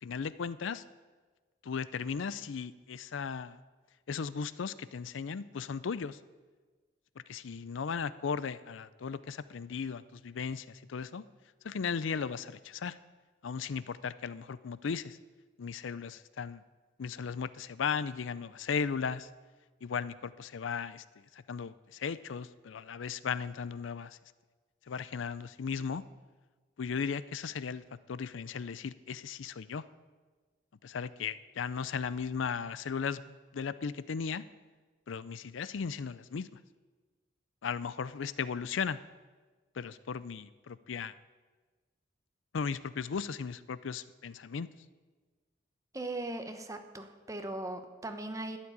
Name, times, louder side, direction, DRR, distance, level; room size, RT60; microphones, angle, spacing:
voice 1, 0.0-0.8 1.6-3.6 4.1-6.2 7.3-11.2 11.6-13.0 13.4-15.2 15.6-16.6 17.0-19.3 19.8-24.2 24.9-26.0 26.8-29.8 30.8-34.4 35.1-36.6 37.6-39.0 39.7-41.2 42.5-44.7, left 6 dB, 80° left, 16 dB, 0.5 m, -36 dB
voice 2, 45.9-48.6, right 2 dB, 15° right, 7 dB, 1.0 m, -39 dB
12.0 x 7.4 x 9.5 m, 1.4 s
head